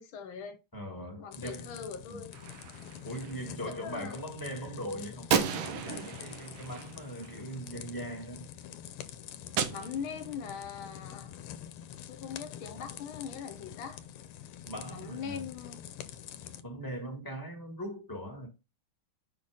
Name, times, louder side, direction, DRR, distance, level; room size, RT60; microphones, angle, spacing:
voice 1, 0.0-0.6 1.2-2.3 3.7-4.2 9.7-11.4 12.1-14.0 14.9-15.8, left 7 dB, 70° left, 1.6 m, -41 dB
voice 2, 0.7-1.8 2.1-2.2 3.0-5.3 5.7-8.5 14.6-15.4 16.6-18.5, right 1 dB, 10° left, 1.5 m, -40 dB
sound 1, 1.3-16.6, left 10 dB, 90° left, 1.6 m, -46 dB
Gunshot gunfire, 2.3-3.3 5.3-7.7 9.6-10.6, right 7 dB, 70° right, 1.5 m, -34 dB
5.6 x 4.1 x 4.9 m
omnidirectional pair, 2.4 m